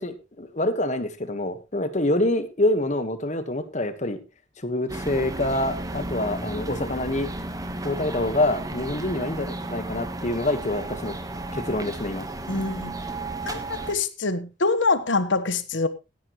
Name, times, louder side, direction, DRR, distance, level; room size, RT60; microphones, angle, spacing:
voice 1, 0.0-4.2 4.6-7.3 7.8-11.1 11.5-12.3, left 1 dB, 40° left, 1.5 m, -26 dB
sound 1, 4.9-13.9, right 2 dB, 20° right, 1.3 m, -33 dB
voice 2, 12.5-12.9 13.5-15.9, left 3 dB, 75° left, 1.3 m, -25 dB
16.5 x 10.5 x 3.1 m
head